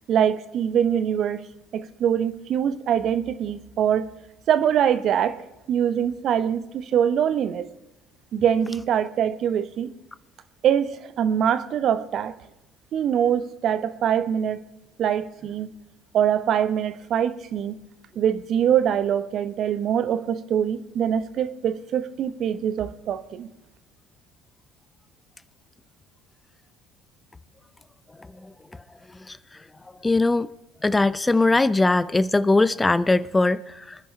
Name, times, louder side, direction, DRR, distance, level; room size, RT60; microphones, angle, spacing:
voice 1, 0.1-1.4 1.7-4.1 4.5-5.4 5.7-7.7 8.3-9.9 10.6-12.3 12.9-14.6 15.0-15.7 16.1-17.8 18.2-23.5, right 9 dB, 55° right, 1.0 m, -23 dB
voice 2, 30.0-30.5 30.8-34.0, left 2 dB, 15° left, 0.6 m, -20 dB
25.5 x 10.0 x 3.3 m
hypercardioid pair, 65°, 0 cm